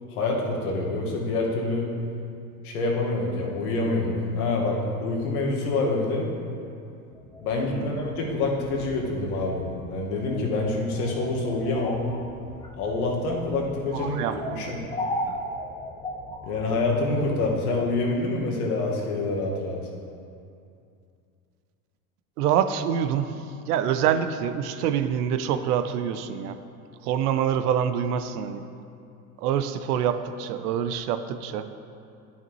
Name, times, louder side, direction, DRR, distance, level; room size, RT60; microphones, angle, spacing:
voice 1, 0.1-1.9 2.6-6.3 7.4-12.0 12.7-14.2 14.5-14.8 16.4-19.8, left 2 dB, 70° left, -1 dB, 1.6 m, -26 dB
sound 1, 7.1-17.6, left 1 dB, 10° left, 0.6 m, -37 dB
voice 2, 7.7-8.0 13.9-14.6 15.3-15.4 22.4-26.6 27.0-28.6 29.4-31.7, right 9 dB, 75° right, 10 dB, 0.6 m, -26 dB
11.0 x 5.9 x 3.0 m, 2.5 s
hypercardioid pair, 95°, 46 cm